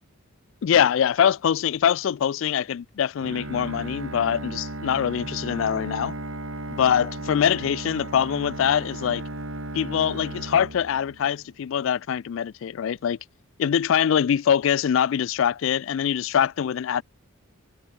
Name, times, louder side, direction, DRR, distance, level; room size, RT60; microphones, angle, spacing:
voice 1, 0.6-6.1 6.7-9.2 9.7-13.2 13.6-17.0, left 8 dB, 60° left, 0.3 m, -23 dB
Bowed string instrument, 3.2-11.4, right 1 dB, 65° right, 4.0 m, -35 dB
head